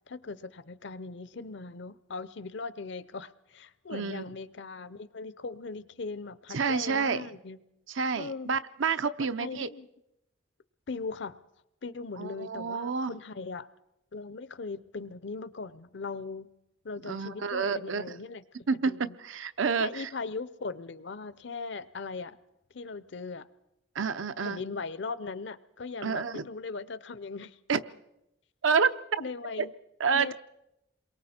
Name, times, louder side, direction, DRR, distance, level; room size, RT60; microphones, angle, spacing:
voice 1, 0.1-7.6 8.2-8.5 9.2-9.9 10.9-11.4 11.8-13.7 14.1-16.5 16.8-18.4 18.9-19.1 19.8-22.4 22.7-23.5 24.4-27.6 29.2-29.7 30.1-30.3, left 4 dB, 65° left, 16 dB, 0.6 m, -39 dB
voice 2, 3.9-4.3 6.5-7.3 7.9-9.7 12.2-13.1 17.1-18.2 18.7-20.1 23.9-24.6 26.0-26.5 27.7-27.8 28.6-29.2 29.6-29.7 30.0-30.3, right 5 dB, 80° right, 12 dB, 0.7 m, -29 dB
28.0 x 22.5 x 4.4 m, 0.88 s
head